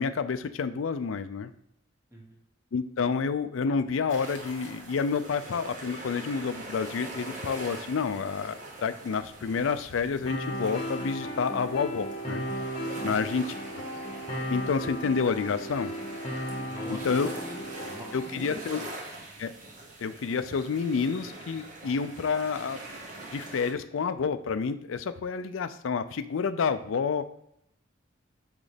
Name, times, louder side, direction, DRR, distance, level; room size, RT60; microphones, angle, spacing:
voice 1, 0.0-1.5 2.7-12.4 13.0-13.4 13.7-13.8 14.5-15.9 16.9-17.3 18.1-18.8 19.4-19.5 20.0-22.8 23.3-27.3, left 5 dB, 90° left, 11 dB, 0.4 m, -29 dB
sound 1, 4.1-23.7, right 2 dB, 40° right, 1.1 m, -43 dB
sound 2, 10.3-18.3, equal, 25° left, 1.0 m, -35 dB
voice 2, 16.7-18.8, equal, 15° right, -1 dB, 1.3 m, -43 dB
6.3 x 3.1 x 5.0 m, 0.75 s
head